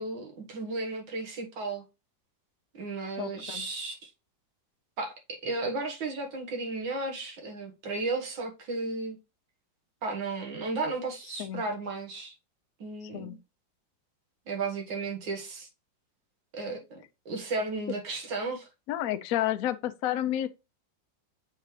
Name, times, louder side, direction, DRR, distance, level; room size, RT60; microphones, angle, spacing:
voice 1, 0.0-1.8 2.7-4.1 5.0-9.2 10.0-12.3 12.8-13.4 14.5-15.7 16.5-18.7, right 3 dB, 80° right, 2.1 m, -34 dB
voice 2, 3.2-3.6 11.4-11.6 13.1-13.4 18.9-20.5, left 12 dB, 65° left, 0.9 m, -30 dB
8.0 x 3.8 x 3.1 m
omnidirectional pair, 2.0 m